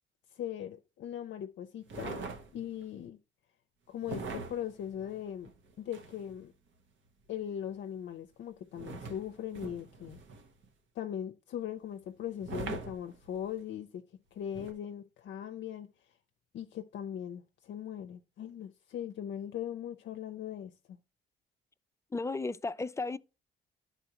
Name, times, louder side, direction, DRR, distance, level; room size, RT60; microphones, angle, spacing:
voice 1, 0.3-2.3 2.5-3.2 3.9-5.5 5.8-6.5 7.3-10.2 11.0-14.0 14.3-15.9 16.5-20.7, left 10 dB, 65° left, 0.5 m, -39 dB
sound 1, 1.9-2.8 4.0-6.4 8.7-10.7 12.4-13.6 14.5-14.7, right 4 dB, 75° right, 1.1 m, -42 dB
voice 2, 22.1-23.2, left 3 dB, 15° left, 0.3 m, -34 dB
10.0 x 4.1 x 2.9 m
cardioid pair, 90°, 20 cm